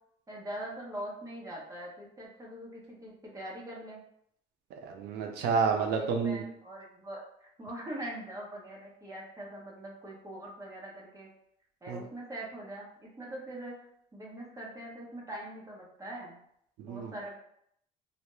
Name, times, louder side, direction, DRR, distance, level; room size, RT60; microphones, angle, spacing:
voice 1, 0.3-4.0 5.9-11.3 11.8-13.8 14.1-16.4 16.9-17.4, right 1 dB, 20° right, -4 dB, 0.8 m, -42 dB
voice 2, 4.8-6.4 11.9-12.0 16.8-17.1, right 5 dB, 80° right, 3 dB, 0.5 m, -30 dB
2.3 x 2.1 x 3.0 m, 0.71 s
cardioid pair, 110°, 17 cm